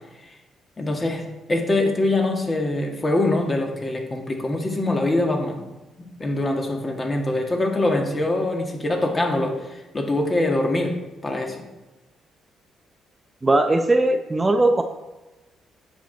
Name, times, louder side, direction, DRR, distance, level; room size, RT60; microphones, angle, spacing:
voice 1, 0.8-5.6 6.2-11.6, left 2 dB, 25° left, 3 dB, 1.7 m, -24 dB
voice 2, 13.4-14.8, right 2 dB, 20° right, 6 dB, 0.6 m, -19 dB
9.3 x 6.6 x 4.0 m, 1.1 s
cardioid pair, 90°, 0 cm